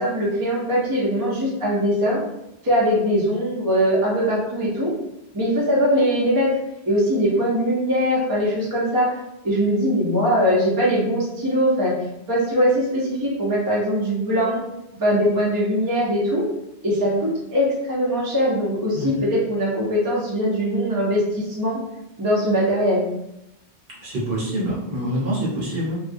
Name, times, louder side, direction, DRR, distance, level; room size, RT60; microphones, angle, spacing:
voice 1, 0.0-2.2 2.6-4.9 5.3-6.5 6.9-9.1 9.4-11.9 12.3-14.6 15.0-16.4 16.8-21.8 22.2-23.1, equal, 25° right, -6 dB, 0.6 m, -21 dB
voice 2, 18.9-19.2 24.0-26.0, equal, 60° right, -6 dB, 0.9 m, -26 dB
2.4 x 2.1 x 2.5 m, 0.86 s
omnidirectional pair, 1.1 m